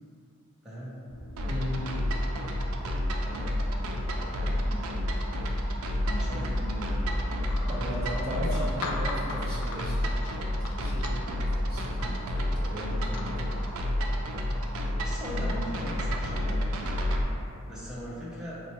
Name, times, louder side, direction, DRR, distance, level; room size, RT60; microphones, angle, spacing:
voice 1, 0.6-1.0 3.2-5.1 6.0-7.7 8.4-8.6 15.0-17.3 17.7-18.6, equal, 5° right, -9 dB, 0.7 m, -41 dB
sound 1, 1.1-16.6, equal, 45° left, 0.9 m, -39 dB
sound 2, 1.4-17.2, equal, 65° right, 0.3 m, -30 dB
voice 2, 1.5-1.8 7.7-10.1 10.8-11.2 11.6-13.5, equal, 45° right, -11 dB, 1.4 m, -36 dB
sound 3, 7.4-15.3, left 3 dB, 85° left, 0.3 m, -43 dB
4.2 x 2.1 x 2.9 m, 2.6 s
head